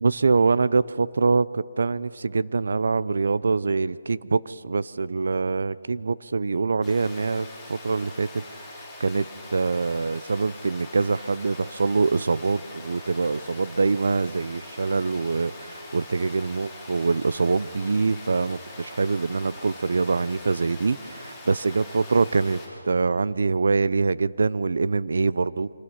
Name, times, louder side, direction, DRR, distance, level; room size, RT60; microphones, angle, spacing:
voice 1, 0.0-22.6 22.9-25.7, right 4 dB, 65° right, 18 dB, 0.6 m, -24 dB
Water, 6.8-22.7, left 2 dB, 5° left, 6.9 m, -43 dB
26.0 x 19.5 x 5.8 m, 2.7 s
figure-of-eight pair, 160°, 0 cm